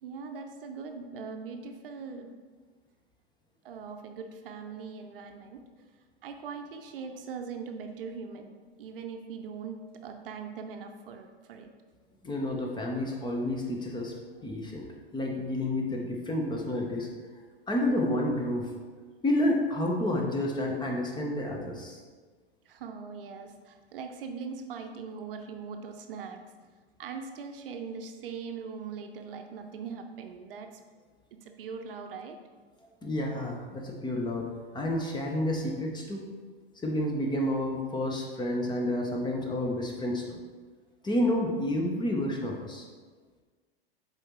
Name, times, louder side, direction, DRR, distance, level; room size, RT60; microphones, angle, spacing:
voice 1, 0.0-2.3 3.6-5.6 6.2-11.7 22.7-26.4 27.0-30.8 31.4-32.4, right 5 dB, 65° right, 5 dB, 0.7 m, -41 dB
voice 2, 12.2-14.2 14.4-14.8 15.1-17.1 17.7-18.7 19.2-22.0 33.0-36.2 36.8-40.4 41.0-42.8, left 1 dB, 15° left, 1 dB, 0.9 m, -30 dB
7.7 x 4.1 x 3.1 m, 1.4 s
figure-of-eight pair, 95°, 30 cm